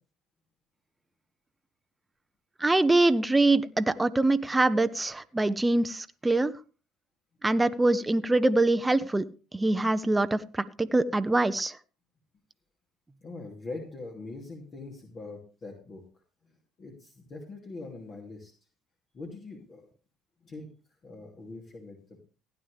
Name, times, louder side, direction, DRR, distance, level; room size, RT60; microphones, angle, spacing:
voice 1, 2.6-6.5 7.4-9.2 9.5-11.8, right 2 dB, 15° right, 11 dB, 0.7 m, -24 dB
voice 2, 13.2-16.0 16.4-16.5 16.8-18.5 19.1-19.8 20.4-20.7 21.0-22.2, left 3 dB, 45° left, 1 dB, 2.8 m, -42 dB
16.0 x 10.0 x 3.4 m, 0.34 s
hypercardioid pair, 65°, 0 cm